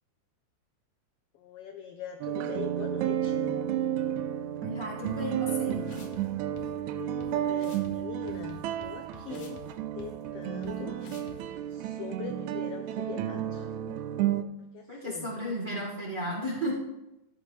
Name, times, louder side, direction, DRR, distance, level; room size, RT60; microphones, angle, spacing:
voice 1, 1.3-3.6 6.8-9.7 9.9-11.0 11.3-13.7 14.6-15.3, left 8 dB, 85° left, 6 dB, 1.3 m, -42 dB
sound 1, 2.2-14.4, right 11 dB, 80° right, 1.9 m, -32 dB
voice 2, 4.6-5.9 14.9-16.8, equal, 20° right, -5 dB, 1.4 m, -34 dB
sound 2, 5.1-5.2 5.7-6.2 6.6-6.7 7.2-7.3 7.6-7.9 8.3-9.7 10.0-10.1 10.6-10.7 11.0-11.4, left 6 dB, 60° left, 1.9 m, -47 dB
14.0 x 8.7 x 3.2 m, 0.93 s
omnidirectional pair, 3.4 m